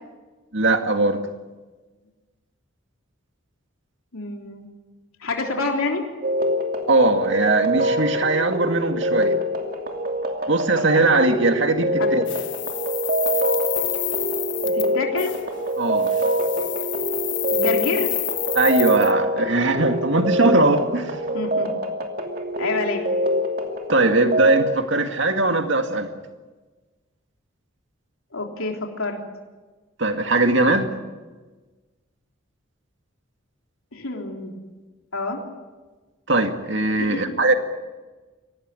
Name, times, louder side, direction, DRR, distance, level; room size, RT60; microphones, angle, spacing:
voice 1, 0.5-1.2 6.9-9.4 10.5-12.2 15.8-16.1 18.6-21.2 23.9-26.1 30.0-30.9 36.3-37.5, right 2 dB, 60° right, 6 dB, 2.1 m, -20 dB
voice 2, 4.1-4.7 5.2-6.0 12.0-12.2 14.7-15.3 17.5-18.1 21.3-21.7 22.6-23.0 28.3-29.2 33.9-34.5 35.1-35.4 37.0-37.2, left 3 dB, 90° left, 1 dB, 3.6 m, -27 dB
sound 1, 6.2-24.6, equal, 45° right, 2.7 m, -25 dB
sound 2, 12.3-14.9 15.2-15.4 16.0-19.1, left 16 dB, 55° left, 1.4 m, -29 dB
25.0 x 18.5 x 9.7 m, 1.3 s
head